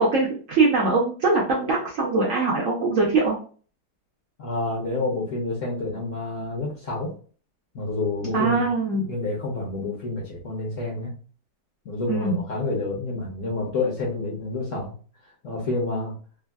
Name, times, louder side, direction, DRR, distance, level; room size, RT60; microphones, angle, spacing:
voice 1, 0.0-3.4 8.3-9.0 12.1-12.4, right 3 dB, 65° right, -3 dB, 0.8 m, -22 dB
voice 2, 4.4-7.1 7.7-8.6 8.9-11.1 11.8-14.9 15.4-16.1, left 2 dB, 60° left, -3 dB, 0.9 m, -28 dB
3.3 x 2.2 x 2.2 m, 0.40 s
omnidirectional pair, 2.0 m